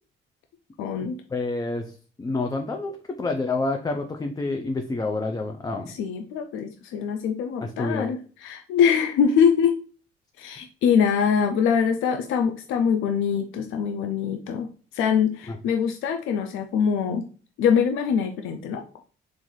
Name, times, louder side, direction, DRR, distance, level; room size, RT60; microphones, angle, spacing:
voice 1, 0.8-1.2 5.9-9.7 10.4-14.7 14.9-17.2 17.6-19.0, left 7 dB, 90° left, 5 dB, 0.4 m, -23 dB
voice 2, 1.3-1.9 2.2-5.9 7.6-8.1 15.5-15.6, left 3 dB, 20° left, 4 dB, 0.4 m, -28 dB
3.9 x 2.5 x 3.0 m, 0.39 s
cardioid pair, 90°, 20 cm